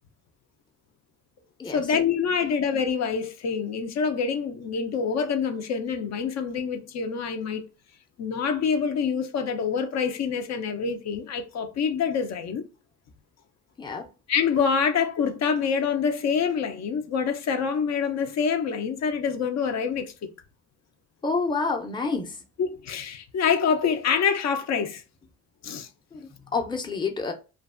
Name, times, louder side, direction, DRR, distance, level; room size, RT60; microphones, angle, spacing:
voice 1, 1.6-7.6 8.2-12.6 14.3-20.3 22.6-25.0 25.6-25.9, left 6 dB, 60° left, 0.5 m, -26 dB
voice 2, 21.2-22.4 26.1-27.3, left 4 dB, 15° left, 0.5 m, -28 dB
2.5 x 2.3 x 2.4 m
cardioid pair, 90°, 30 cm